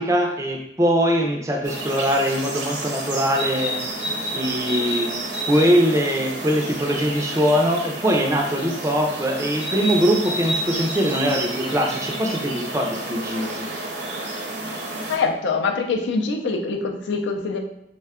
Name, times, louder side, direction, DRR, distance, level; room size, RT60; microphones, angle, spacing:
voice 1, 0.0-3.8 4.3-5.1 5.5-13.7, equal, 15° right, 1 dB, 0.4 m, -22 dB
sound 1, 1.6-15.2, right 1 dB, 75° right, 0.8 m, -30 dB
voice 2, 15.1-17.6, left 4 dB, 90° left, 3 dB, 0.4 m, -24 dB
3.5 x 2.2 x 3.5 m, 0.81 s
head